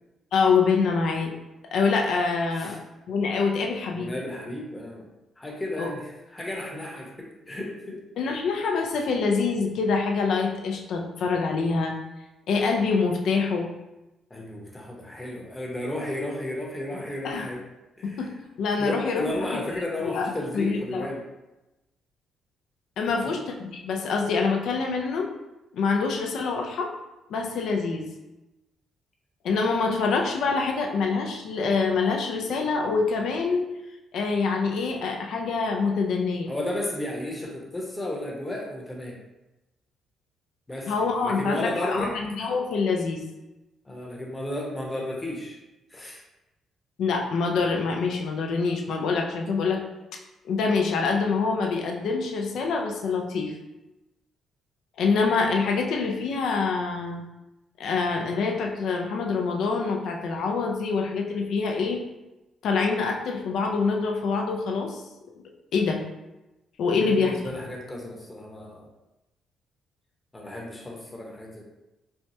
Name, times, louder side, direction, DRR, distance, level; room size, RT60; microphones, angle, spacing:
voice 1, 0.3-1.3 1.7-2.8 3.1-4.1 5.8-5.9 8.2-12.0 12.5-13.7 17.2-17.5 18.0-18.3 18.6-19.3 20.0-21.1 23.0-25.3 25.7-26.9 27.3-28.1 29.4-33.6 34.1-36.5 40.9-43.2 47.0-49.8 50.4-53.5 55.0-57.2 57.8-62.0 62.6-65.0 65.7-66.0 66.8-67.3, left 4 dB, 75° left, 2 dB, 0.5 m, -25 dB
voice 2, 3.9-5.1 5.4-8.0 14.3-17.6 18.0-18.3 18.8-21.2 23.1-23.4 36.5-39.2 40.7-42.2 43.8-45.6 45.9-46.2 66.9-68.9 70.3-71.6, left 1 dB, 15° left, -2 dB, 0.9 m, -33 dB
4.4 x 2.2 x 2.7 m, 0.99 s
cardioid pair, 90°, 0 cm